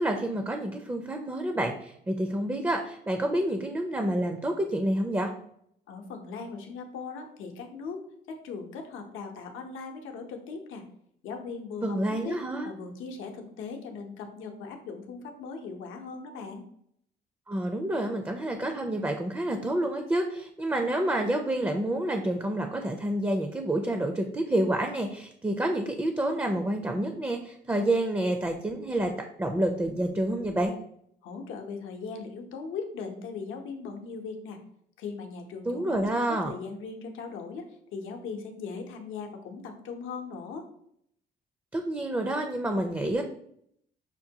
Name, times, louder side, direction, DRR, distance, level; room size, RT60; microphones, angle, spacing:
voice 1, 0.0-5.3 11.8-12.7 17.5-29.1 29.4-30.7 35.7-36.5 41.7-43.2, right 1 dB, 10° right, 5 dB, 0.4 m, -28 dB
voice 2, 5.9-8.0 8.3-10.8 11.2-12.4 12.6-16.6 31.2-34.6 35.0-40.7, left 4 dB, 85° left, 3 dB, 0.7 m, -39 dB
5.8 x 2.2 x 2.7 m, 0.70 s
cardioid pair, 90°, 20 cm